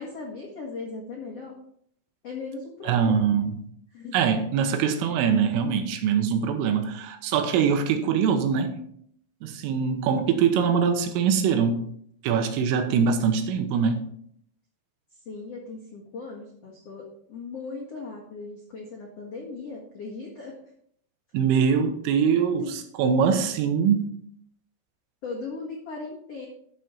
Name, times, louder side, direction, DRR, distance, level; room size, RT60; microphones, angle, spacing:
voice 1, 0.0-1.6 2.2-3.3 3.9-4.3 12.9-13.2 15.2-20.5 22.3-22.7 25.2-26.5, left 3 dB, 75° left, -3 dB, 1.4 m, -38 dB
voice 2, 2.9-3.5 4.1-8.8 9.4-11.9 12.2-14.0 21.3-22.7 23.0-24.1, right 7 dB, 85° right, 7 dB, 3.6 m, -23 dB
12.5 x 6.7 x 4.3 m, 0.66 s
omnidirectional pair, 5.9 m